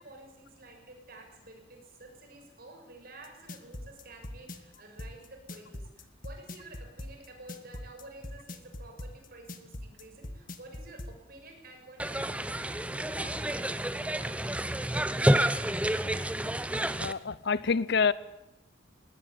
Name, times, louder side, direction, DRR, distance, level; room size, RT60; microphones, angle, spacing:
voice 1, 0.0-16.0, right 2 dB, 50° right, 3 dB, 6.7 m, -51 dB
sound 1, 3.2-11.1, left 1 dB, 45° left, 1.8 m, -41 dB
sound 2, 12.0-17.1, right 1 dB, 5° right, 0.8 m, -29 dB
voice 2, 17.0-18.1, left 5 dB, 60° left, 17 dB, 0.8 m, -27 dB
20.0 x 18.5 x 9.5 m, 0.91 s
head